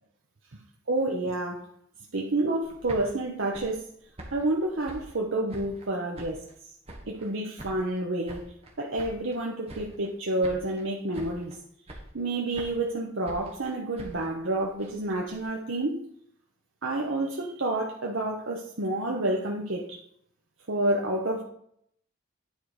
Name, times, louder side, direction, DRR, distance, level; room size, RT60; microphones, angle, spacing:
voice 1, 0.9-1.7 2.1-3.9 4.3-6.7 7.1-8.5 8.8-11.6 12.1-16.0 16.8-20.0 20.7-21.4, right 2 dB, 60° right, -2 dB, 0.9 m, -29 dB
sound 1, 2.6-5.9 6.1-7.3 7.6-9.4 9.7-10.2 10.4-10.9 11.1-11.6 11.9-12.9 13.3-15.4, right 1 dB, 30° right, 1.4 m, -46 dB
9.4 x 4.7 x 4.9 m, 0.68 s
head